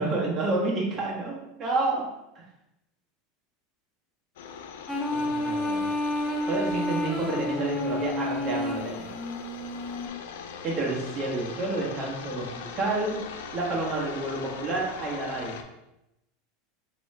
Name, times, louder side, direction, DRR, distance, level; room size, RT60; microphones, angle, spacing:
voice 1, 0.0-2.0 5.1-5.9 6.5-9.1 10.6-15.6, right 2 dB, 40° right, -3 dB, 1.2 m, -29 dB
sound 1, 4.4-15.6, left 6 dB, 80° left, 0.4 m, -41 dB
sound 2, 4.9-10.1, left 1 dB, 5° left, 0.5 m, -30 dB
3.1 x 3.0 x 3.2 m, 0.89 s
supercardioid pair, 110°, 0 cm